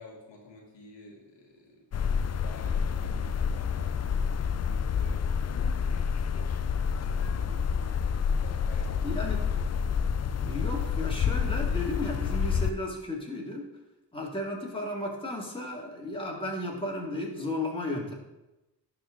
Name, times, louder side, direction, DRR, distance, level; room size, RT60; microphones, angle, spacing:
voice 1, 0.0-1.8 2.4-9.7, left 3 dB, 85° left, -1 dB, 1.7 m, -50 dB
sound 1, 1.9-12.7, left 6 dB, 40° left, 0.4 m, -28 dB
voice 2, 9.0-9.4 10.3-13.7 14.1-18.1, left 1 dB, 10° left, -2 dB, 2.3 m, -34 dB
11.5 x 4.3 x 3.9 m, 0.98 s
cardioid pair, 60°, 43 cm